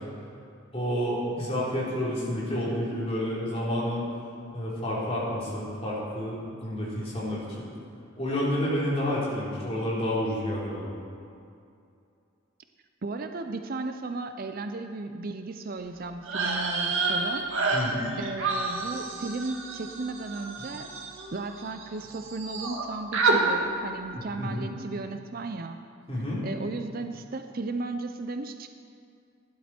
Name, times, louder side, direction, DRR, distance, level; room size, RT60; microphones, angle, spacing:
voice 1, 0.7-4.1 4.5-7.6 8.2-10.9 17.7-18.0 24.4-24.6 26.1-26.4, equal, 30° left, -7 dB, 3.9 m, -29 dB
voice 2, 13.0-17.4 18.1-20.9 21.3-25.8 26.4-28.7, right 3 dB, 40° right, 7 dB, 0.5 m, -35 dB
sound 1, 16.2-21.9 22.1-22.8 23.1-23.4, right 3 dB, 65° right, 1.8 m, -29 dB
16.5 x 11.5 x 4.4 m, 2.5 s
head